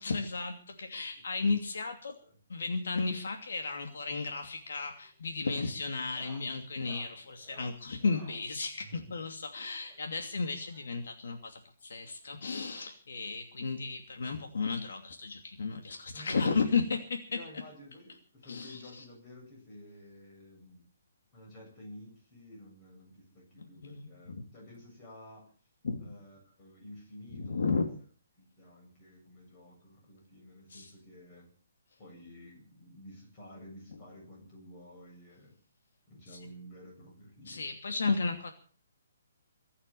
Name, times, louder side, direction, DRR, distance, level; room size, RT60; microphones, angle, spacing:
voice 1, 0.0-2.1 2.5-16.8 18.5-19.0 23.6-24.4 25.8-26.1 27.3-27.8 30.7-30.9 36.3-36.4 37.4-38.5, left 4 dB, 65° left, 4 dB, 2.7 m, -34 dB
sound 1, 4.6-4.8 5.0-5.4 5.9-8.5 9.8-11.2 12.2-12.3 12.5-12.6 13.1-13.2 14.5-14.6 15.9-16.0, right 2 dB, 5° left, 5.3 m, -57 dB
voice 2, 8.8-9.2 16.1-16.8 17.3-20.8 21.3-25.5 26.0-27.9 28.4-31.5 32.0-35.5 36.1-37.6, left 1 dB, 20° left, -1 dB, 7.8 m, -51 dB
23.5 x 8.8 x 7.1 m, 0.42 s
hypercardioid pair, 175°, 0 cm